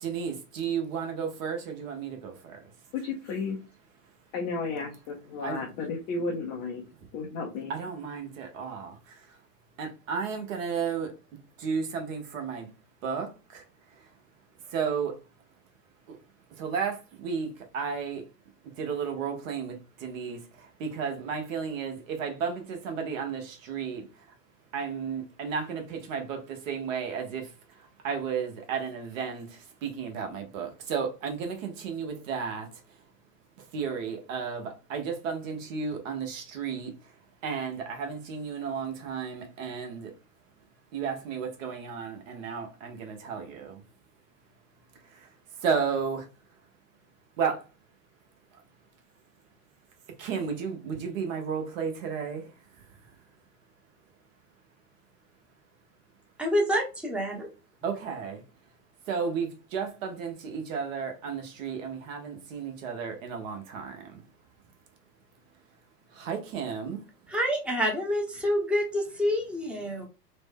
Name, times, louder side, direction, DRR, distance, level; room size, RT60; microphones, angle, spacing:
voice 1, 0.0-2.7 5.4-5.6 7.7-9.4 9.8-11.1 11.6-12.7 13.0-14.1 14.6-15.2 16.1-16.2 16.5-18.2 18.8-24.2 24.7-32.7 33.6-37.1 37.4-40.1 40.9-43.8 45.0-45.3 45.6-46.3 47.4-47.7 48.5-48.6 50.2-52.5 52.8-53.0 57.8-58.4 59.0-64.2 66.1-67.0, right 6 dB, 55° right, 1.1 m, -33 dB
voice 2, 2.9-3.6 4.3-6.9 7.1-7.7, left 4 dB, 25° left, 0.4 m, -33 dB
voice 3, 56.4-57.5 67.3-70.1, equal, ahead, 0.7 m, -27 dB
3.1 x 2.2 x 3.4 m
figure-of-eight pair, 95°, 48 cm